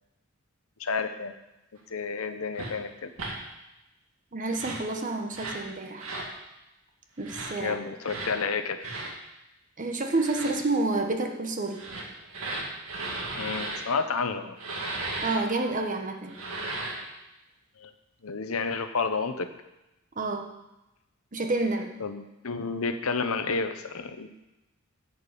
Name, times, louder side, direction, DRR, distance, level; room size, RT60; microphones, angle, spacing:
voice 1, 0.8-1.3 1.9-3.1 7.6-8.8 13.4-14.6 17.8-17.9 18.2-19.5 22.0-24.3, left 4 dB, 85° left, 9 dB, 0.9 m, -30 dB
sound 1, 2.6-2.7 3.2-3.4 4.4-4.9 5.3-5.6 6.0-6.3 7.2-7.5 8.0-8.3 8.8-9.1 10.1-10.6 11.7-13.8 14.6-15.4 16.3-17.1, right 2 dB, 85° right, 2.1 m, -35 dB
voice 2, 4.3-6.1 7.2-7.8 9.8-11.8 15.2-16.4 20.1-20.5 21.3-22.0, right 2 dB, 40° right, 3 dB, 1.2 m, -29 dB
11.0 x 5.4 x 8.4 m, 0.96 s
head